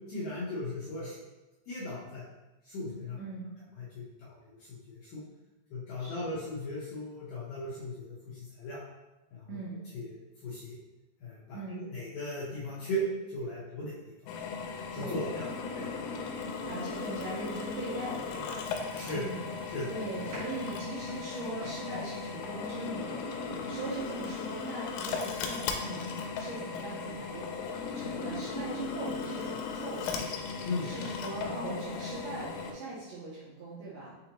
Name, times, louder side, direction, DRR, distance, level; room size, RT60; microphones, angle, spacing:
voice 1, 0.1-1.2 1.7-2.2 2.6-3.2 3.8-4.4 4.7-5.2 5.7-8.8 9.3-9.6 9.9-10.7 11.2-13.0 13.3-14.3 14.9-15.5 15.7-15.8 18.9-19.2 19.7-19.9 30.6-30.9, left 1 dB, 70° left, -8 dB, 2.2 m, -37 dB
voice 2, 3.2-3.5 6.0-6.3 9.5-9.8 11.5-11.8 15.0-15.5 16.7-18.7 19.1-19.4 19.9-27.5 27.9-30.2 30.7-34.2, right 2 dB, 75° right, -8 dB, 2.1 m, -40 dB
Drill, 14.3-32.7, left 5 dB, 90° left, 2.7 m, -37 dB
sound 1, 17.6-19.2 19.5-19.9 20.2-22.1, right 1 dB, 60° right, 1.5 m, -49 dB
6.6 x 2.7 x 2.9 m, 1.1 s
omnidirectional pair, 4.8 m